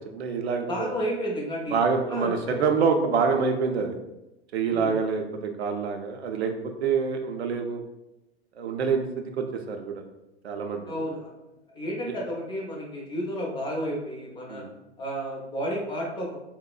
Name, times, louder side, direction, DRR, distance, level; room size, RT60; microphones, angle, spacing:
voice 1, 0.1-0.9 1.7-3.9 4.5-7.8 8.6-9.0 9.4-10.0 10.4-11.1 14.5-14.7, right 5 dB, 75° right, 4 dB, 0.5 m, -26 dB
voice 2, 0.7-1.8 2.1-2.7 4.7-5.0 10.9-11.3 11.7-14.6 15.0-16.4, equal, 15° left, -2 dB, 0.4 m, -32 dB
3.9 x 2.0 x 2.3 m, 0.95 s
figure-of-eight pair, 95°, 33 cm